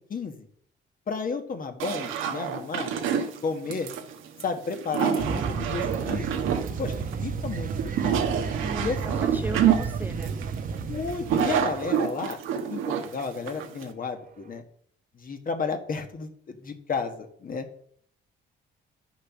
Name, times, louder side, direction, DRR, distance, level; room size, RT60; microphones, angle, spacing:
voice 1, 0.1-0.5 1.1-2.9 3.4-3.9 4.4-6.3 6.8-6.9 7.2-8.2 8.8-9.2 10.9-12.4 12.7-14.6 15.1-17.7, left 5 dB, 45° left, 6 dB, 1.6 m, -32 dB
sound 1, 1.8-13.9, right 8 dB, 90° right, 1.2 m, -28 dB
sound 2, 5.2-12.0 14.6-14.7, right 5 dB, 45° right, 0.9 m, -32 dB
voice 2, 8.6-10.4, right 2 dB, 10° right, 8 dB, 0.7 m, -37 dB
10.0 x 6.5 x 6.0 m, 0.64 s
cardioid pair, 90°, 20 cm